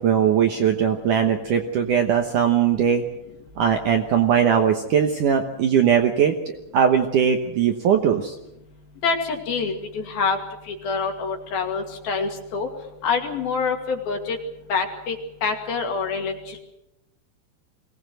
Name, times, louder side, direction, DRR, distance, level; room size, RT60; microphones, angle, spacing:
voice 1, 0.0-3.0 3.6-6.3 6.7-8.3, right 8 dB, 70° right, 4 dB, 2.1 m, -20 dB
voice 2, 9.0-10.4 10.7-12.7 13.0-14.4 14.7-15.2 15.4-16.6, left 5 dB, 60° left, 3 dB, 4.0 m, -26 dB
23.0 x 18.5 x 7.8 m, 0.88 s
omnidirectional pair, 5.0 m